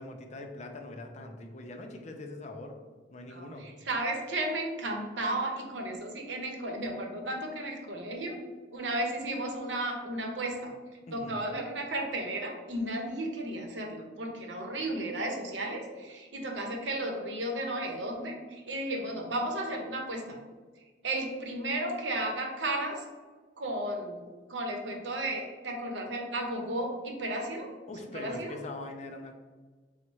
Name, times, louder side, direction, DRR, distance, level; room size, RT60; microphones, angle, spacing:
voice 1, 0.0-2.7 3.1-3.7 11.1-11.4 27.9-29.3, left 2 dB, 40° left, 4 dB, 0.5 m, -42 dB
voice 2, 3.3-8.4 8.7-10.7 11.1-20.4 21.0-23.0 23.6-27.7 28.2-28.5, right 1 dB, 85° right, 2 dB, 0.8 m, -34 dB
4.2 x 2.1 x 4.5 m, 1.4 s
head